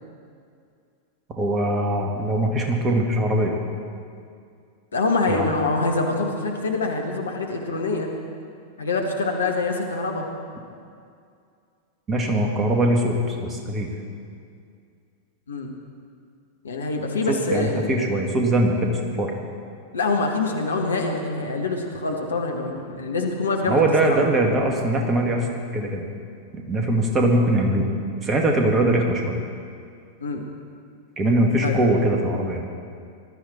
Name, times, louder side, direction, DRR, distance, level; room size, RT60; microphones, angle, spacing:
voice 1, 1.4-3.6 5.3-5.5 12.1-13.9 17.3-19.3 23.7-25.5 25.7-26.0 26.5-27.9 28.2-29.4 31.2-32.7, right 1 dB, 20° right, 1 dB, 2.1 m, -21 dB
voice 2, 4.9-8.1 8.8-10.3 15.5-15.7 16.6-17.9 19.9-23.8 24.0-24.2 30.2-30.4 31.6-31.8, left 3 dB, 70° left, 2 dB, 1.7 m, -25 dB
19.5 x 13.0 x 4.4 m, 2.3 s
figure-of-eight pair, 90°, 0 cm